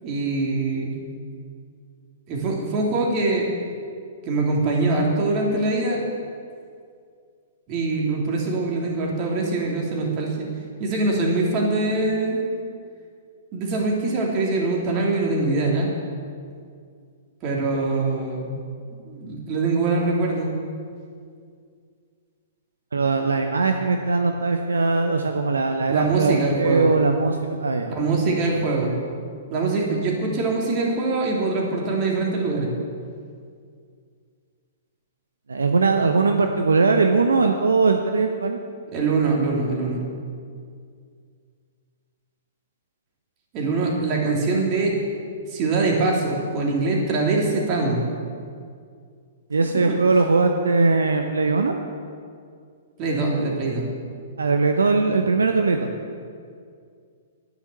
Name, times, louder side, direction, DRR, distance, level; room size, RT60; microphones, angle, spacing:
voice 1, 0.0-1.1 2.3-3.5 4.2-6.0 7.7-10.4 10.8-12.5 13.5-15.9 17.4-18.5 19.1-20.5 25.9-26.9 27.9-28.9 29.5-32.7 38.9-40.0 43.5-44.9 45.5-48.0 49.9-50.0 53.0-53.8, right 3 dB, 35° right, -2 dB, 3.2 m, -23 dB
voice 2, 22.9-27.9 35.5-38.6 49.5-51.7 54.4-55.9, right 4 dB, 75° right, 5 dB, 0.8 m, -20 dB
10.5 x 10.0 x 7.8 m, 2.2 s
figure-of-eight pair, 110°, 0 cm